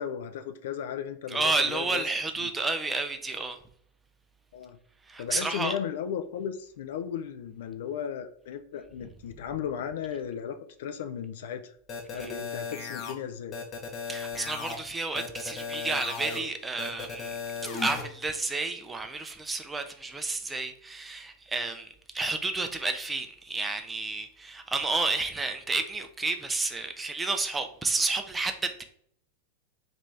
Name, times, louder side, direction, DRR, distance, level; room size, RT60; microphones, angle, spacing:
voice 1, 0.0-2.0 2.4-2.5 4.5-4.8 5.2-11.7 12.1-13.6, left 8 dB, 55° left, 0.3 m, -35 dB
voice 2, 1.3-3.6 5.1-5.8 12.1-12.3 14.1-17.4 17.8-28.8, right 3 dB, 10° right, 0.4 m, -31 dB
sound 1, 11.9-13.1 13.5-14.8 15.1-16.4 16.8-18.0, left 5 dB, 30° left, 0.7 m, -36 dB
3.0 x 2.5 x 3.3 m
figure-of-eight pair, 90°, 0 cm